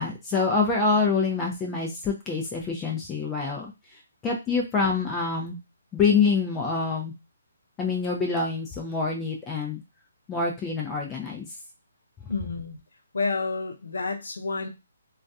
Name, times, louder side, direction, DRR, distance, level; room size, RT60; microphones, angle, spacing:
voice 1, 0.0-3.7 4.2-5.6 5.9-7.1 7.8-9.8 10.3-11.5, left 4 dB, 15° left, 0 dB, 0.4 m, -26 dB
voice 2, 12.3-12.8 13.1-14.7, left 4 dB, 85° left, 4 dB, 0.6 m, -29 dB
2.3 x 2.2 x 2.6 m, 0.24 s
hypercardioid pair, 150°, 0 cm